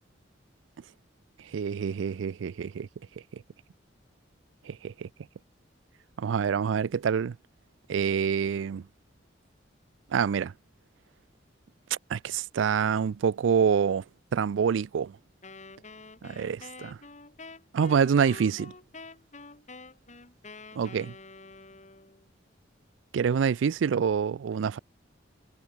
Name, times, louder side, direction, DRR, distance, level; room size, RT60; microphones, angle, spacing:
voice 1, 1.5-2.9 4.7-5.1 6.2-7.4 7.9-8.8 10.1-10.5 12.1-14.0 14.3-15.1 16.2-17.0 17.7-18.7 20.8-21.1 23.1-24.8, right 7 dB, 85° right, 0.4 m, -26 dB
Wind instrument woodwind instrument, 15.4-22.3, left 3 dB, 40° left, 4.7 m, -47 dB
head